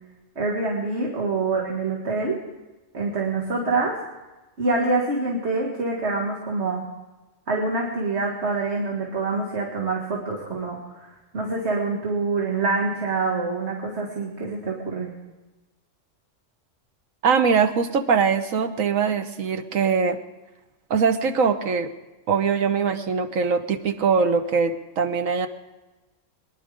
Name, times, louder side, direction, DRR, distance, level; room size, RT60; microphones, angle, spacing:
voice 1, 0.4-2.4 2.9-4.0 4.6-6.8 7.5-15.1, right 3 dB, 55° right, -2 dB, 2.4 m, -26 dB
voice 2, 17.2-20.2 20.9-21.9 22.3-25.5, right 5 dB, 90° right, 8 dB, 1.4 m, -22 dB
23.0 x 11.0 x 5.2 m, 1.1 s
omnidirectional pair, 1.3 m